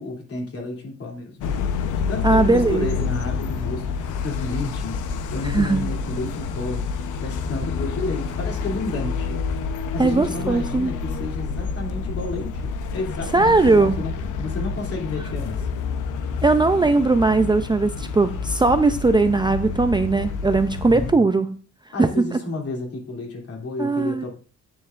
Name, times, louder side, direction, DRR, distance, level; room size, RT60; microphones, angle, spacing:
voice 1, 0.0-1.5 1.9-5.0 5.3-6.9 7.2-9.4 9.9-14.1 14.4-15.7 20.9-21.3 21.9-24.3, left 2 dB, 50° left, 0 dB, 3.1 m, -31 dB
sound 1, 1.4-21.1, left 5 dB, 85° left, 0.9 m, -28 dB
voice 2, 2.2-2.9 5.5-5.9 10.0-10.9 13.3-14.0 16.4-21.6 22.0-22.3 23.8-24.2, right 3 dB, 15° right, 9 dB, 0.5 m, -19 dB
9.5 x 7.2 x 2.6 m, 0.39 s
cardioid pair, 90°, 30 cm